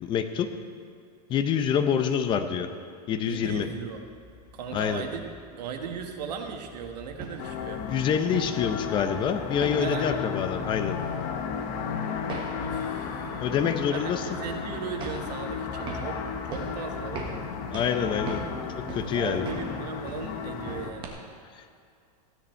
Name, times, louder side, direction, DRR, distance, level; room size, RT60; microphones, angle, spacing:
voice 1, 0.0-0.5 1.3-2.7 3.1-3.7 4.7-5.0 7.9-11.0 13.4-14.2 17.7-18.4 18.7-19.5 21.6-21.8, left 7 dB, 25° left, 9 dB, 0.7 m, -26 dB
voice 2, 3.2-4.0 4.5-7.8 9.8-10.1 12.6-13.5 13.9-17.3 18.5-21.2, right 6 dB, 85° right, 4 dB, 1.6 m, -38 dB
sound 1, 3.3-21.1, right 2 dB, 25° right, 1.5 m, -42 dB
sound 2, 7.4-20.9, left 6 dB, 40° left, 1.0 m, -34 dB
15.5 x 9.8 x 4.4 m, 2.4 s
supercardioid pair, 155°, 20 cm